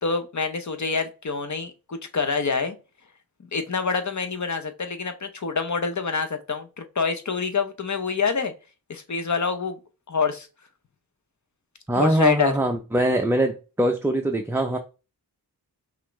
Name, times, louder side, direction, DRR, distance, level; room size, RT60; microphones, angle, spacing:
voice 1, 0.0-2.8 3.5-8.5 8.9-9.8 10.1-10.5 11.9-12.5, left 5 dB, 45° left, 0.8 m, -26 dB
voice 2, 11.9-14.8, right 1 dB, 5° right, 0.5 m, -22 dB
5.5 x 2.6 x 3.1 m
wide cardioid pair, 90°, 41 cm